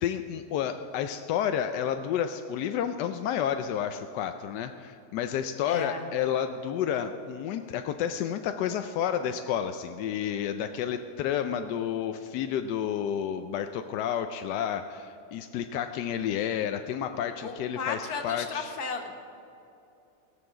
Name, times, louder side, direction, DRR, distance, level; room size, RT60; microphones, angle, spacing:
voice 1, 0.0-18.7, left 9 dB, 90° left, 8 dB, 1.2 m, -30 dB
voice 2, 5.6-6.0 17.4-19.1, left 5 dB, 70° left, 5 dB, 1.7 m, -34 dB
18.5 x 7.2 x 6.9 m, 2.7 s
omnidirectional pair, 1.8 m